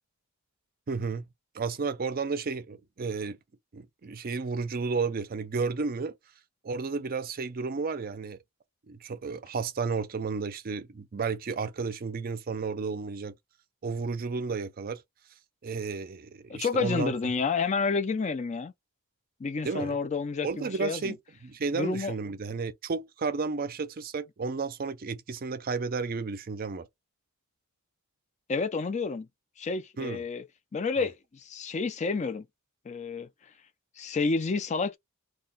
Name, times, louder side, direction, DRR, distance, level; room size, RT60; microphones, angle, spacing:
voice 1, 0.9-1.2 1.5-3.4 3.7-6.1 6.6-8.4 8.9-13.3 13.8-15.0 15.6-17.1 19.6-20.0 20.4-21.2 21.4-26.9 30.0-30.2 31.0-31.1, right 4 dB, 40° right, 0.4 m, -32 dB
voice 2, 16.5-18.7 19.4-21.2 21.7-22.1 28.5-29.3 29.6-30.4 30.7-32.4 32.9-33.3 34.0-35.0, left 4 dB, 30° left, 0.4 m, -30 dB
2.3 x 2.2 x 3.8 m
head